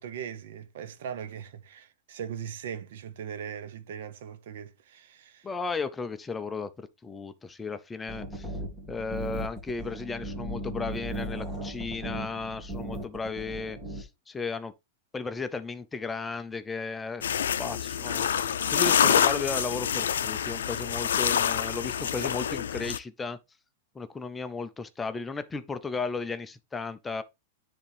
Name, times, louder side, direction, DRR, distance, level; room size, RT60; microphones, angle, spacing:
voice 1, 0.0-5.5, right 8 dB, 65° right, 0.8 m, -39 dB
voice 2, 5.4-8.5 8.9-14.7 15.1-17.3 17.6-23.4 23.9-27.2, left 4 dB, 10° left, 0.5 m, -35 dB
sound 1, 8.1-14.0, right 1 dB, 15° right, 2.0 m, -37 dB
sound 2, 17.2-23.0, left 8 dB, 90° left, 0.4 m, -26 dB
10.0 x 3.6 x 3.3 m
hypercardioid pair, 145°, 0 cm